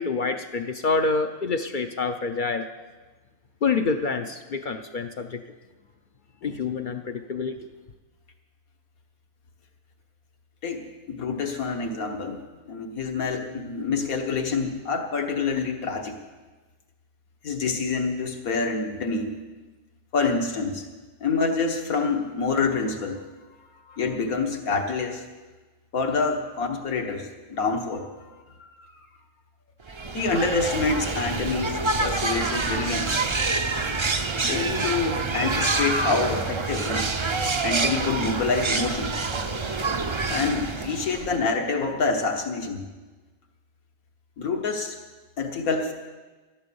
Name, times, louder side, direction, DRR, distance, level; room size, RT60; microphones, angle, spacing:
voice 1, 0.0-2.7 3.6-5.4 6.4-7.6, left 4 dB, 50° left, 7 dB, 0.6 m, -27 dB
voice 2, 10.6-12.4 12.7-16.2 17.4-19.4 20.1-20.9 21.2-23.2 23.9-25.3 25.9-28.3 28.8-28.9 30.1-33.2 34.5-37.1 37.6-39.2 40.3-42.8 44.4-45.0 45.4-45.9, left 4 dB, 80° left, 3 dB, 1.9 m, -27 dB
sound 1, 29.9-41.5, right 3 dB, 35° right, 0.5 m, -27 dB
12.5 x 11.5 x 7.0 m, 1.3 s
omnidirectional pair, 1.5 m